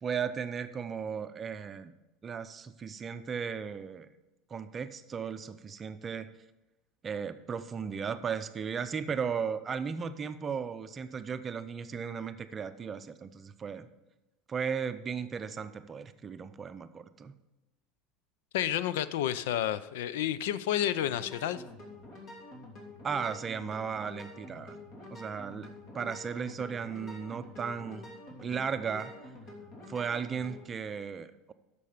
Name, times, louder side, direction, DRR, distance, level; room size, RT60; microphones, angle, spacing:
voice 1, 0.0-1.9 2.2-4.1 4.5-6.3 7.0-13.9 14.5-17.3 23.0-24.8 25.1-25.7 25.9-28.1 28.4-29.1 29.9-31.5, right 6 dB, 25° right, 11 dB, 0.6 m, -36 dB
voice 2, 18.5-21.6, left 11 dB, 85° left, 16 dB, 0.5 m, -30 dB
sound 1, 21.0-30.6, left 2 dB, 45° left, 3.0 m, -48 dB
10.5 x 6.9 x 5.1 m, 1.0 s
supercardioid pair, 135°, 0 cm